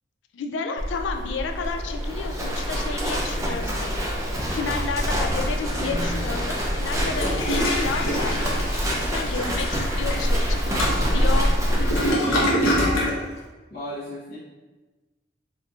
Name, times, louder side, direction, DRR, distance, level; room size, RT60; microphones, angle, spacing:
voice 1, 0.3-4.3 4.5-11.5, left 4 dB, 70° left, 5 dB, 0.3 m, -32 dB
Livestock farm animals working animals, 0.8-12.1, equal, 15° right, 0.4 m, -25 dB
sound 1, 4.3-11.2, equal, 30° left, 0.7 m, -42 dB
Toilet flush, 7.0-13.2, equal, 85° left, 0.8 m, -26 dB
voice 2, 12.2-12.7 13.7-14.4, equal, 55° left, -9 dB, 1.0 m, -34 dB
4.2 x 2.6 x 2.3 m, 1.2 s
head